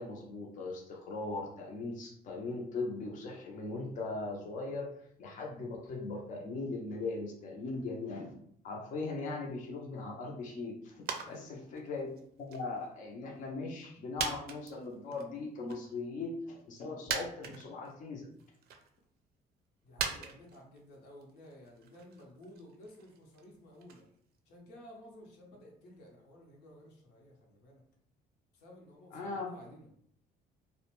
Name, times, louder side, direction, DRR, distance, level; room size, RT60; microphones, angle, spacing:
voice 1, 0.0-4.9 5.2-8.3 8.6-12.1 12.4-18.3 29.1-29.5, left 3 dB, 50° left, -1 dB, 0.5 m, -39 dB
sound 1, 11.0-11.4 11.7-12.9 13.3-13.5 14.2-15.2 15.7-15.8 16.7-16.8 17.1-17.9 18.4-19.0 20.0-24.1 24.4-24.5, right 6 dB, 65° right, 0.4 m, -40 dB
voice 2, 11.1-11.6 19.8-24.1 24.5-27.8 28.5-29.9, left 1 dB, 85° left, -1 dB, 0.8 m, -54 dB
2.4 x 2.1 x 3.0 m, 0.67 s
cardioid pair, 110°, 17 cm